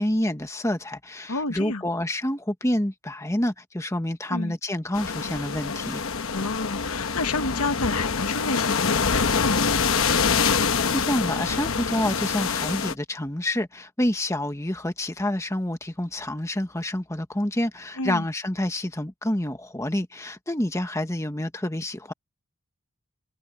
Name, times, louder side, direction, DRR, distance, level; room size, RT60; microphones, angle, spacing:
voice 1, 0.0-6.0 10.8-22.1, left 1 dB, 15° left, 1.3 m, -28 dB
voice 2, 1.3-1.8 4.3-4.5 6.3-9.8 18.0-18.2, left 3 dB, 80° left, 1.4 m, -30 dB
sound 1, 4.9-12.9, left 5 dB, 65° left, 1.1 m, -25 dB
head